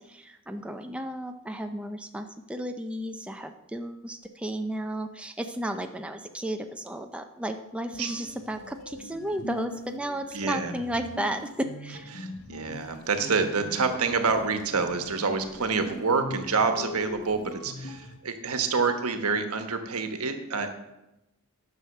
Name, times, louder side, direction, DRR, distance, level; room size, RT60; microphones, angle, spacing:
voice 1, 0.0-12.1, right 1 dB, 5° right, 5 dB, 0.5 m, -33 dB
sound 1, 7.9-18.2, left 1 dB, 75° left, 1.0 m, -42 dB
voice 2, 10.3-10.7 12.1-20.7, right 4 dB, 80° right, 7 dB, 1.2 m, -27 dB
9.9 x 6.3 x 6.6 m, 0.95 s
head